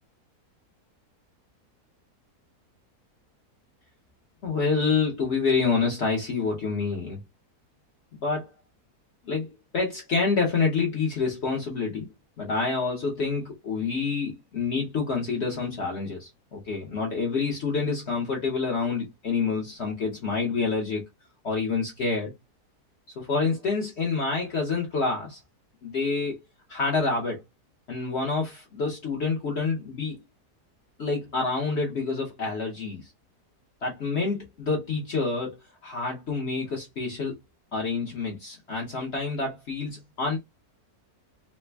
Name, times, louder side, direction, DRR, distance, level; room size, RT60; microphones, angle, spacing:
voice 1, 4.4-7.2 8.2-8.5 9.2-12.1 12.4-21.0 21.4-22.3 23.2-25.4 25.8-26.4 26.7-27.4 27.9-30.2 31.0-33.0 33.8-35.5 35.8-37.3 37.7-40.4, left 4 dB, 55° left, 0.9 m, -27 dB
3.2 x 2.1 x 3.2 m
omnidirectional pair, 1.6 m